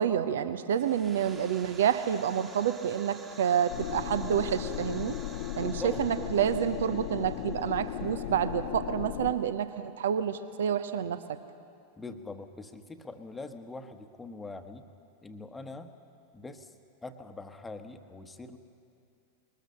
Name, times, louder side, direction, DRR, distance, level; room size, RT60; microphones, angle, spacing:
voice 1, 0.0-5.2 5.6-9.7 10.0-11.4, right 8 dB, 60° right, 13 dB, 0.7 m, -28 dB
sound 1, 0.7-9.2, right 4 dB, 25° right, 1.8 m, -51 dB
sound 2, 3.7-9.3, left 12 dB, 50° left, 0.7 m, -36 dB
voice 2, 5.5-6.0 12.0-14.9 15.2-15.9 16.3-16.7 17.0-18.6, left 3 dB, 10° left, 8 dB, 1.1 m, -43 dB
21.5 x 20.0 x 6.5 m, 2.5 s
figure-of-eight pair, 90°, 0 cm